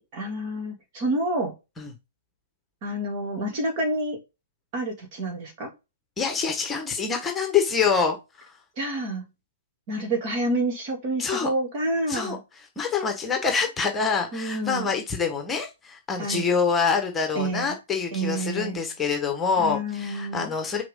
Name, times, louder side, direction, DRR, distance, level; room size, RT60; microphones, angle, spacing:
voice 1, 0.1-1.5 2.8-4.2 4.7-5.7 8.8-9.2 9.9-12.4 14.3-14.9 16.2-16.5 17.3-17.7 18.1-18.8 19.6-20.5, right 1 dB, 40° right, 3 dB, 2.8 m, -28 dB
voice 2, 6.2-8.6 11.2-11.5 12.1-12.4 12.7-20.8, left 5 dB, 15° left, 5 dB, 1.5 m, -26 dB
5.8 x 4.7 x 3.8 m, 0.25 s
figure-of-eight pair, 120°, 0 cm